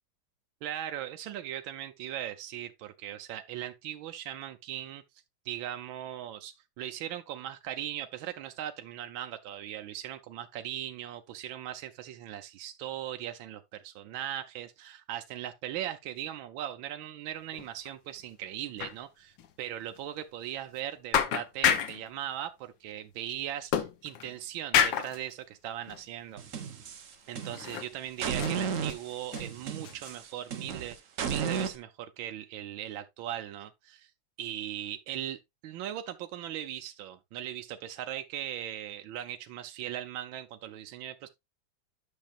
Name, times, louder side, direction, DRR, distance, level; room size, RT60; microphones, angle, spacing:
voice 1, 0.6-5.0 5.4-26.4 27.3-31.0 31.3-34.1 34.4-41.3, right 11 dB, 85° right, 1.5 m, -39 dB
sound 1, 17.5-17.9 18.2-18.3 18.8-19.0 19.4-19.5 20.0-20.1 20.8-20.9 21.1-22.1 23.7-24.4 24.7-25.2 25.9-26.0 26.5-26.6 27.4-27.9 28.2-29.5 29.8-30.1, left 9 dB, 75° left, 1.7 m, -29 dB
sound 2, 26.4-27.8 28.2-31.8, right 7 dB, 50° right, 1.1 m, -34 dB
10.5 x 6.4 x 2.4 m
omnidirectional pair, 2.1 m